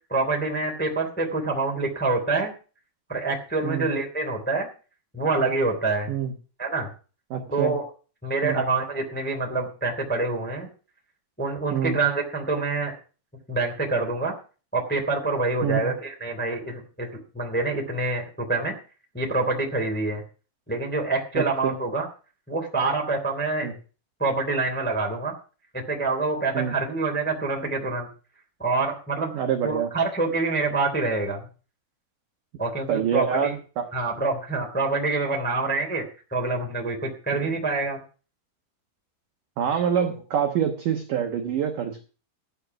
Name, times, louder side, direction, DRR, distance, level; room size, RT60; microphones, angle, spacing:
voice 1, 0.1-2.5 3.1-4.7 5.1-6.1 6.6-6.9 7.5-7.8 8.2-10.7 11.4-12.9 13.5-14.3 14.7-18.7 19.1-20.2 20.7-22.1 22.5-23.7 24.2-25.3 25.7-28.1 28.6-29.3 29.6-31.5 32.6-33.5 33.9-36.0 36.3-38.0 40.0-40.1, right 3 dB, 5° left, 1 dB, 1.5 m, -26 dB
voice 2, 7.3-7.8 8.4-8.6 11.7-12.0 15.6-15.9 21.3-21.8 23.6-23.7 26.5-26.8 29.3-29.9 32.9-33.9 37.4-37.5 39.6-42.0, right 8 dB, 80° right, 4 dB, 1.8 m, -26 dB
14.5 x 8.3 x 5.8 m, 0.37 s
omnidirectional pair, 5.7 m